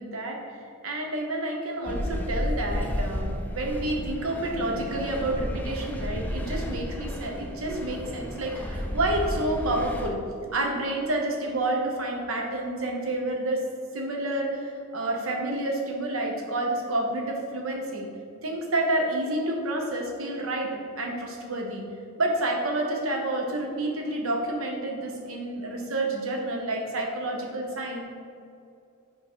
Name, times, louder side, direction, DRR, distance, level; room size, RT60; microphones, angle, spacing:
voice 1, 0.0-10.2 10.5-13.6 13.9-18.1 18.4-20.7 21.0-21.8 22.2-28.0, right 1 dB, 70° right, 1 dB, 1.0 m, -29 dB
sound 1, 1.9-10.1, equal, 10° left, 0.4 m, -32 dB
5.8 x 3.9 x 4.5 m, 2.4 s
head